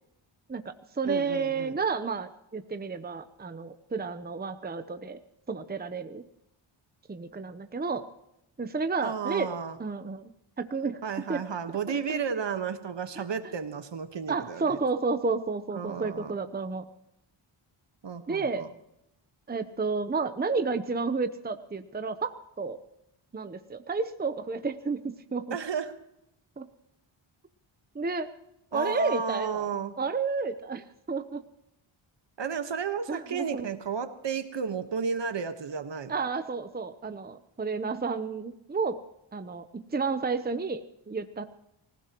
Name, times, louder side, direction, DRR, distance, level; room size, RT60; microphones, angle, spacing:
voice 1, 0.5-5.2 5.5-6.2 7.1-8.1 8.6-9.5 9.8-10.3 10.6-11.0 11.3-11.4 11.9-12.2 13.2-13.3 14.3-16.9 18.3-18.7 19.5-22.8 23.3-25.6 26.6-26.7 27.9-28.3 28.7-29.7 30.0-31.4 33.1-33.7 36.1-39.0 39.3-41.4, right 4 dB, 20° right, 9 dB, 0.9 m, -31 dB
voice 2, 1.0-1.7 9.0-9.8 11.0-14.8 15.7-16.3 18.0-18.7 25.5-25.9 28.7-29.9 32.4-36.1, right 6 dB, 60° right, 8 dB, 1.4 m, -33 dB
24.5 x 16.0 x 3.0 m, 0.83 s
cardioid pair, 75°, 50 cm